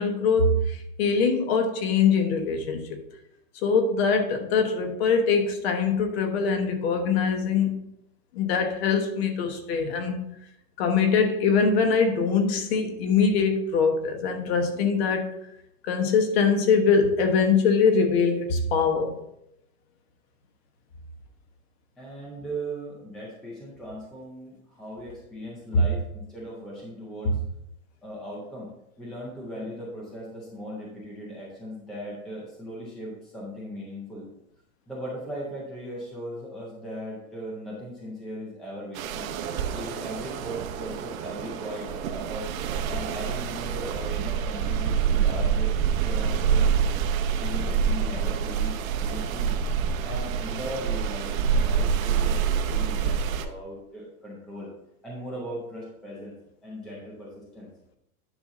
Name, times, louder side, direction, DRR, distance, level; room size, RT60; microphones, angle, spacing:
voice 1, 0.0-3.0 3.6-7.8 8.3-10.2 10.8-15.3 15.8-19.2 25.7-25.8 27.2-27.3, left 5 dB, 45° left, 6 dB, 1.2 m, -23 dB
voice 2, 22.0-27.4 28.0-28.7 29.0-34.3 34.9-39.3 39.7-42.5 42.9-46.8 47.4-49.6 50.0-54.7 55.0-56.3 56.6-57.7, equal, ahead, -4 dB, 0.4 m, -38 dB
sound 1, 39.0-53.5, right 7 dB, 65° right, 1.1 m, -26 dB
9.7 x 5.6 x 3.8 m, 0.82 s
supercardioid pair, 170°, 43 cm